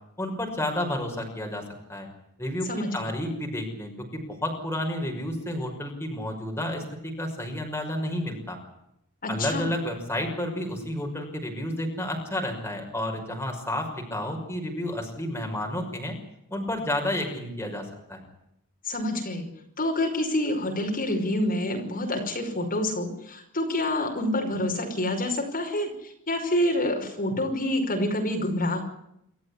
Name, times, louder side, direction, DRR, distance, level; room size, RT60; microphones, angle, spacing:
voice 1, 0.2-1.6 1.9-2.1 2.4-8.6 9.3-16.2 16.5-18.3, left 1 dB, 10° left, 2 dB, 6.0 m, -31 dB
voice 2, 9.2-9.6 18.8-19.5 19.8-28.8, left 1 dB, 40° left, 3 dB, 5.3 m, -27 dB
28.5 x 14.0 x 9.9 m, 0.78 s
head